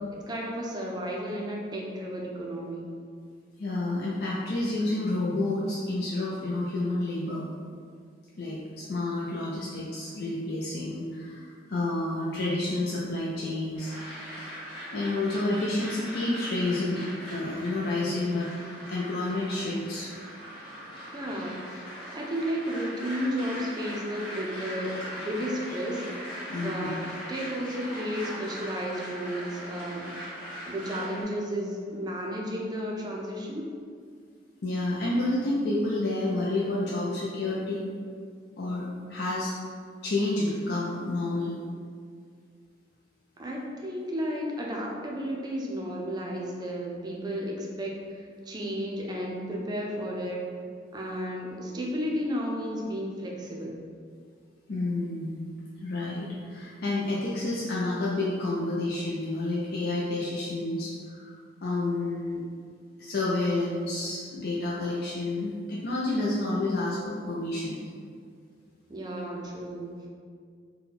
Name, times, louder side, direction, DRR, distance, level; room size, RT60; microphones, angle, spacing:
voice 1, 0.1-2.9 21.1-21.7 22.1-26.0 26.5-30.1 30.7-33.7 43.4-50.4 50.9-53.8 68.9-70.1, equal, 25° right, -2 dB, 0.5 m, -33 dB
voice 2, 3.6-7.4 8.4-13.9 14.9-17.0 17.3-18.5 18.9-20.1 26.5-26.9 34.6-37.8 38.6-38.8 39.1-39.6 40.0-41.6 54.7-55.4 55.8-61.3 61.6-62.4 63.0-67.8, left 2 dB, 60° left, -6 dB, 0.5 m, -29 dB
sound 1, 13.7-31.2, equal, 30° left, 1.3 m, -40 dB
3.8 x 2.2 x 4.1 m, 2.1 s
head